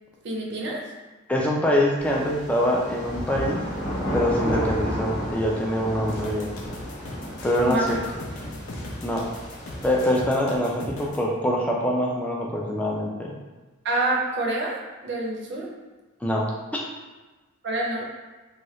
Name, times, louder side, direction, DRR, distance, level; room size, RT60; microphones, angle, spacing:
voice 1, 0.2-0.8 7.7-7.9 13.8-15.7 17.6-18.0, right 2 dB, 55° right, -1 dB, 0.5 m, -27 dB
voice 2, 1.3-3.6 4.1-6.5 7.4-8.0 9.0-9.3 9.8-13.3 16.2-16.8, equal, 5° left, -2 dB, 0.3 m, -24 dB
sound 1, 2.0-10.0, equal, 50° left, 0.8 m, -32 dB
sound 2, 6.1-11.2, left 1 dB, 80° left, 0.5 m, -39 dB
2.8 x 2.3 x 3.0 m, 1.2 s
head